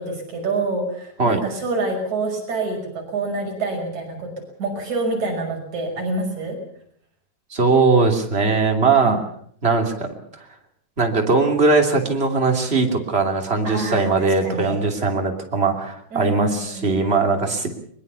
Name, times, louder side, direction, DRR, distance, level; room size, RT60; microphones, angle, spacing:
voice 1, 0.0-4.3 4.6-6.6 9.0-9.2 13.6-14.8 16.1-16.9, right 2 dB, 45° right, 2 dB, 7.1 m, -27 dB
voice 2, 7.5-9.2 9.6-10.1 11.0-17.7, right 4 dB, 20° right, 3 dB, 2.4 m, -20 dB
22.0 x 22.0 x 6.9 m, 0.64 s
omnidirectional pair, 4.5 m